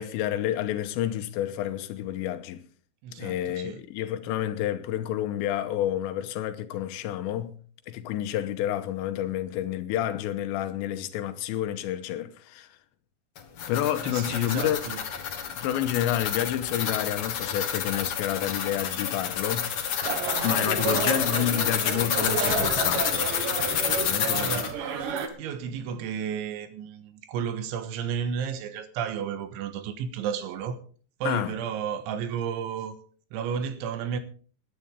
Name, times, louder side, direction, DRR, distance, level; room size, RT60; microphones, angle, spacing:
voice 1, 0.0-2.6 3.2-7.6 7.9-12.8 13.7-14.8 15.6-19.7 20.4-23.3 24.0-24.5 31.2-31.6, left 12 dB, 80° left, 3.2 m, -29 dB
voice 2, 3.0-3.8 14.0-15.0 24.2-24.8 25.4-30.8 31.2-33.0 33.3-34.2, right 7 dB, 90° right, 3.7 m, -32 dB
sound 1, 13.4-24.7, left 8 dB, 60° left, 1.8 m, -29 dB
sound 2, 20.0-25.3, right 6 dB, 60° right, 2.5 m, -31 dB
20.5 x 11.5 x 3.5 m
omnidirectional pair, 5.3 m